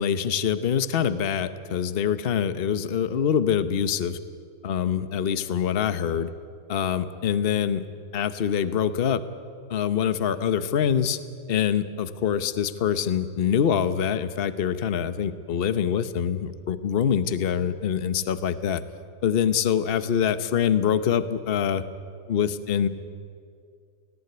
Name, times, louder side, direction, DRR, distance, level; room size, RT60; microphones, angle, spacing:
voice 1, 0.0-4.2 4.6-6.3 6.7-7.8 8.1-9.2 9.7-11.2 11.5-18.8 19.2-21.8 22.3-22.9, left 8 dB, 45° left, 13 dB, 0.8 m, -25 dB
18.5 x 18.0 x 9.7 m, 2.2 s
omnidirectional pair, 2.0 m